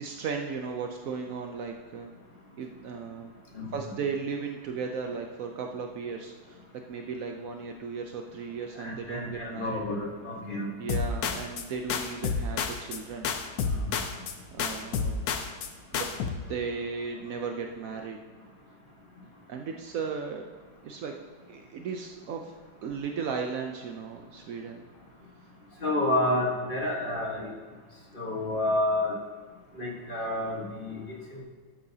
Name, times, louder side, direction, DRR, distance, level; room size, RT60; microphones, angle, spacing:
voice 1, 0.0-2.1 2.6-3.3 3.7-6.6 6.9-10.1 10.8-13.3 14.5-15.3 15.9-16.1 16.5-18.2 19.5-20.4 20.8-21.2 21.5-22.5 22.8-24.9, right 5 dB, 80° right, 3 dB, 0.7 m, -36 dB
voice 2, 8.7-11.0 11.2-11.4 13.7-13.9 25.8-27.5 28.1-29.2 29.7-31.4, left 1 dB, 30° left, -2 dB, 1.4 m, -30 dB
sound 1, 10.9-11.6 11.9-13.0 13.2-14.3 14.6-15.7 15.9-16.3, left 5 dB, 65° left, 1.0 m, -30 dB
12.5 x 8.6 x 2.8 m, 1.5 s
omnidirectional pair, 2.2 m